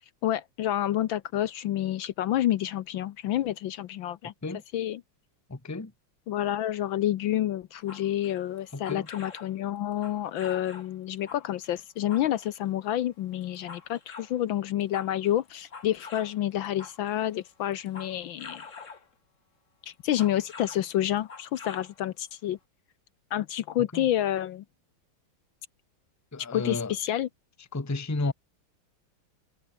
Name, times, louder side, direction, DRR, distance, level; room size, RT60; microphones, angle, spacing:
voice 1, 0.2-4.3 4.7-5.0 6.3-18.6 19.9-22.6 23.3-24.6 26.5-27.3, left 12 dB, 70° left, 1.4 m, -29 dB
voice 2, 5.5-5.9 8.7-9.1 23.9-24.1 26.3-26.9 27.7-28.3, left 2 dB, 10° left, 1.0 m, -32 dB
sound 1, 7.8-9.5 9.9-10.9 11.3-12.7 13.2-14.4 14.7-17.2 17.7-19.1 19.9-20.9 21.2-22.0 22.3-22.4, left 5 dB, 35° left, 2.3 m, -46 dB
omnidirectional pair, 2.4 m